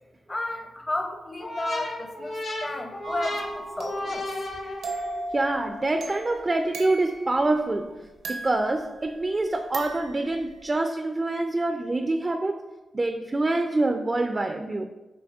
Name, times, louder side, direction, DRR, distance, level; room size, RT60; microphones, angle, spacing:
voice 1, 0.3-4.3, left 1 dB, 30° left, 5 dB, 0.7 m, -33 dB
sound 1, 1.4-5.3, left 1 dB, 70° left, 1.3 m, -34 dB
sound 2, 3.0-7.5 8.2-9.3 9.7-10.7, right 2 dB, 85° right, 0.7 m, -38 dB
voice 2, 5.3-12.6 12.9-14.9, right 2 dB, 35° right, 6 dB, 0.3 m, -26 dB
6.1 x 3.2 x 2.4 m, 1.1 s
cardioid pair, 55°, 0 cm